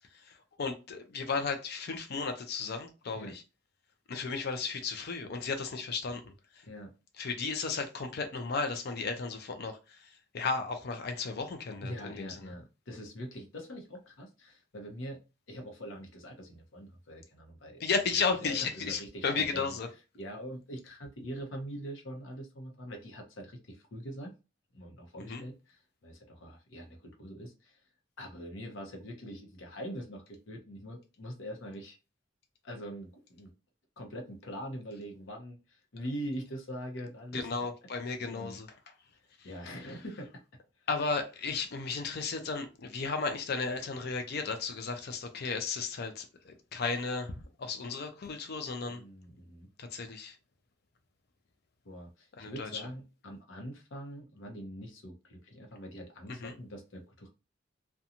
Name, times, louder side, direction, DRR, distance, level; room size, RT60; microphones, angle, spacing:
voice 1, 0.1-3.4 4.1-6.7 7.2-12.4 17.8-19.9 25.3-25.4 37.3-38.7 39.4-39.5 40.9-49.0 49.8-50.4 52.4-52.8 56.4-56.5, left 4 dB, 55° left, 0.5 m, -34 dB
voice 2, 11.8-15.2 15.5-17.8 18.4-19.7 20.1-24.3 24.7-27.8 28.2-32.0 32.6-33.5 34.0-37.5 38.3-38.6 39.4-40.3 48.9-49.7 51.8-57.3, equal, 85° left, 0.8 m, -43 dB
2.5 x 2.2 x 2.8 m
head